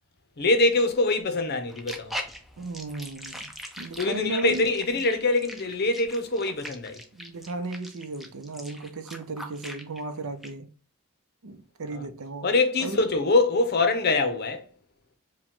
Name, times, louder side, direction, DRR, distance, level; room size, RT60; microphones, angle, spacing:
voice 1, 0.4-2.1 4.0-7.0 11.9-12.1 12.4-14.6, left 2 dB, 50° left, 0.7 m, -24 dB
sound 1, 1.7-10.0 10.4-10.5, equal, ahead, 0.5 m, -40 dB
voice 2, 2.6-4.7 4.9-5.0 7.1-10.7 11.4-12.5 12.8-13.0, right 3 dB, 80° right, 0.6 m, -35 dB
4.9 x 2.3 x 3.6 m
head